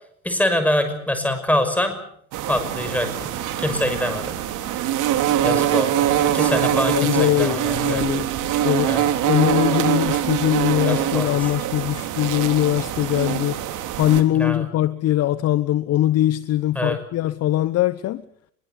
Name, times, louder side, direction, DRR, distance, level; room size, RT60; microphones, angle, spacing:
voice 1, 0.2-2.0 2.5-3.3 3.6-4.4 5.4-8.2 8.8-9.0 10.8-11.5 14.3-14.7 16.7-17.0, left 1 dB, 5° left, 7 dB, 5.9 m, -25 dB
sound 1, 2.3-14.2, right 11 dB, 45° right, 3.2 m, -23 dB
voice 2, 6.6-8.3 8.6-13.6 14.0-18.2, left 13 dB, 35° left, 14 dB, 1.0 m, -22 dB
24.0 x 22.0 x 8.2 m, 0.68 s
supercardioid pair, 115°, 42 cm